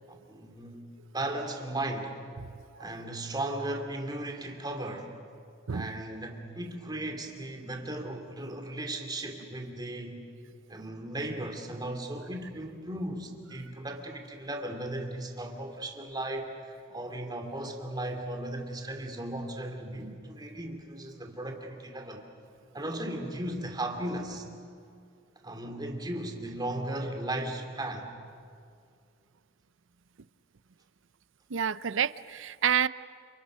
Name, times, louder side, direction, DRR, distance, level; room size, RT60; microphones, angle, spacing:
voice 1, 0.1-0.8 1.1-2.1 2.8-5.1 5.7-10.2 10.7-22.3 22.7-24.5 25.4-28.1, right 1 dB, 20° right, 4 dB, 2.8 m, -36 dB
voice 2, 31.5-32.9, right 8 dB, 70° right, 17 dB, 0.6 m, -28 dB
29.5 x 28.5 x 6.4 m, 2.3 s
head